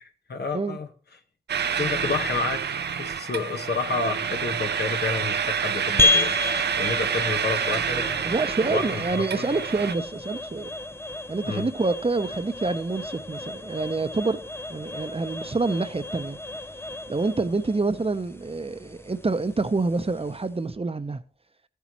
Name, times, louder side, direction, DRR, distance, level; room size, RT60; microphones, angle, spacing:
voice 1, 0.3-0.9 1.7-2.7 3.0-6.4 6.7-8.1 8.6-9.6 11.4-11.7, left 4 dB, 80° left, 1.2 m, -30 dB
sound 1, 1.5-10.0, right 7 dB, 90° right, 0.5 m, -28 dB
sound 2, 6.0-20.6, left 2 dB, 15° left, 0.4 m, -31 dB
voice 2, 8.2-10.7 11.3-14.4 14.7-16.4 17.1-21.2, right 3 dB, 35° right, 0.8 m, -27 dB
14.5 x 8.3 x 3.0 m
cardioid pair, 40°, 17 cm